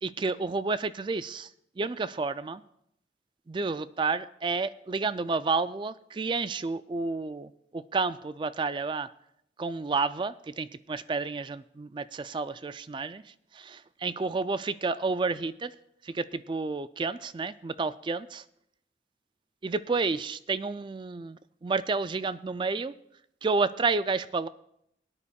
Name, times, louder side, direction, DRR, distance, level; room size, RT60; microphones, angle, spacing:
voice 1, 0.0-1.5 1.8-2.6 3.5-9.1 9.6-13.2 13.5-15.7 16.0-18.4 19.6-22.9 23.4-24.5, right 4 dB, 25° right, 14 dB, 0.3 m, -30 dB
22.0 x 9.9 x 2.3 m, 0.75 s
head